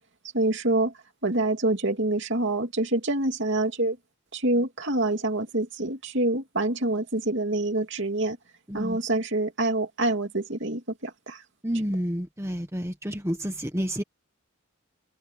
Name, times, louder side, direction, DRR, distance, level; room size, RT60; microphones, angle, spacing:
voice 1, 0.3-0.9 1.2-4.0 4.3-8.4 8.7-11.4, right 2 dB, 55° right, 2.9 m, -26 dB
voice 2, 11.6-14.0, equal, 15° right, 1.3 m, -29 dB
head